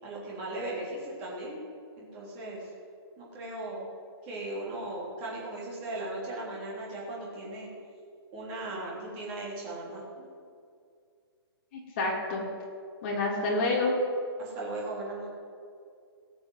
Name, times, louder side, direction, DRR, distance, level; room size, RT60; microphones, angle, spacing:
voice 1, 0.0-1.6 2.0-2.7 3.2-3.9 4.2-7.7 8.3-10.2 14.4-15.3, right 2 dB, 20° right, -6 dB, 3.5 m, -37 dB
voice 2, 11.7-12.4 13.0-14.0, left 2 dB, 30° left, -3 dB, 3.1 m, -28 dB
17.5 x 6.8 x 8.1 m, 2.3 s
hypercardioid pair, 175°, 13 cm